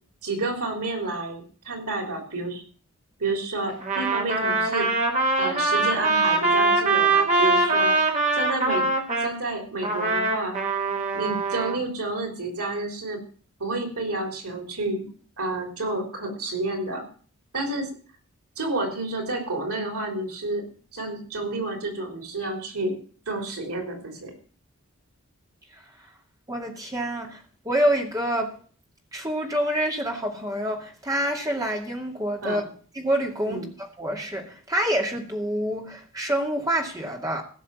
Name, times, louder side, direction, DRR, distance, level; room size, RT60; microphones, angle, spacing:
voice 1, 0.2-2.6 3.2-4.9 5.4-7.9 8.3-8.8 9.2-10.6 11.1-13.2 13.6-15.1 15.4-17.0 17.5-17.9 18.6-20.6 20.9-23.0 23.3-24.3 32.4-32.7 33.5-33.7, right 2 dB, 85° right, 3.8 m, -30 dB
Trumpet, 3.8-9.3 9.8-11.8, right 3 dB, 30° right, 2.2 m, -23 dB
voice 2, 26.5-28.6 29.1-32.6 32.9-33.7 34.0-37.4, right 1 dB, 15° right, 2.3 m, -27 dB
16.0 x 6.4 x 7.1 m
head